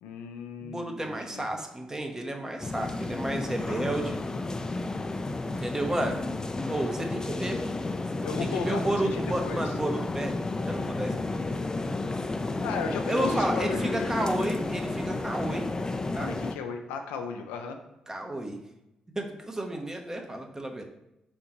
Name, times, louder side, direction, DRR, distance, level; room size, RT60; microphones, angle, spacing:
voice 1, 0.0-1.5 8.2-9.7 12.6-14.5 16.2-17.8, left 5 dB, 85° left, 5 dB, 0.4 m, -36 dB
voice 2, 0.6-4.2 5.4-6.2 6.7-7.8 8.4-10.3 10.7-11.4 13.1-15.7 16.1-16.3 18.1-18.6 19.2-20.8, right 1 dB, 20° right, 3 dB, 0.8 m, -32 dB
sound 1, 2.6-16.5, left 2 dB, 25° left, 0.4 m, -31 dB
4.1 x 3.6 x 2.9 m, 0.89 s
hypercardioid pair, 45°, 3 cm